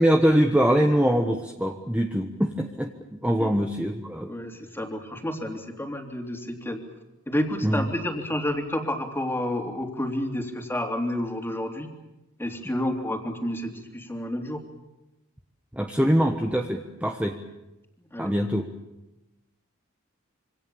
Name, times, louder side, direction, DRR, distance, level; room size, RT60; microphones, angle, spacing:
voice 1, 0.0-2.9 3.2-4.3 7.6-7.9 15.7-17.4 18.2-18.7, equal, 5° right, 3 dB, 1.3 m, -23 dB
voice 2, 4.3-6.8 7.3-11.9 12.4-14.6 18.0-18.4, left 1 dB, 10° left, 3 dB, 3.2 m, -30 dB
26.5 x 25.0 x 7.1 m, 0.96 s
head